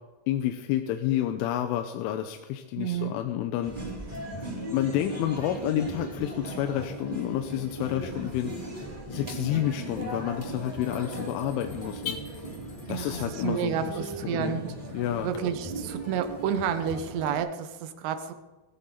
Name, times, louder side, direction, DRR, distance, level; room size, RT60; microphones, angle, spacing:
voice 1, 0.3-3.7 4.5-8.5 9.1-12.2 12.9-14.6 14.9-15.3, left 12 dB, 85° left, 6 dB, 3.3 m, -30 dB
voice 2, 2.8-3.2 12.9-14.7 15.2-18.3, right 8 dB, 75° right, 9 dB, 3.0 m, -30 dB
sound 1, 3.6-17.4, right 2 dB, 10° right, 3.4 m, -38 dB
Car / Alarm, 6.2-15.4, left 7 dB, 65° left, 1.9 m, -48 dB
sound 2, 10.5-13.6, left 3 dB, 30° left, 2.3 m, -57 dB
20.0 x 14.5 x 3.9 m, 1.2 s
omnidirectional pair, 5.5 m